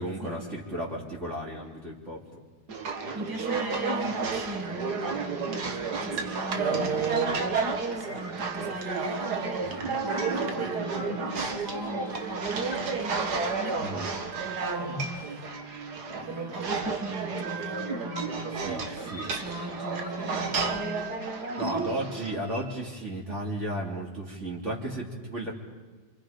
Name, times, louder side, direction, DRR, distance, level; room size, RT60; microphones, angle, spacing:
voice 1, 0.0-2.4 9.7-9.9 13.8-14.1 18.6-19.3 21.6-25.5, right 1 dB, 45° right, -3 dB, 3.3 m, -34 dB
sound 1, 2.7-22.3, right 4 dB, 70° right, 1.9 m, -31 dB
voice 2, 3.1-15.5 16.1-22.1, right 1 dB, 10° right, -1 dB, 2.8 m, -39 dB
sound 2, 8.0-22.7, right 1 dB, 20° left, 3.0 m, -42 dB
27.5 x 26.0 x 5.2 m, 1.4 s
omnidirectional pair, 1.8 m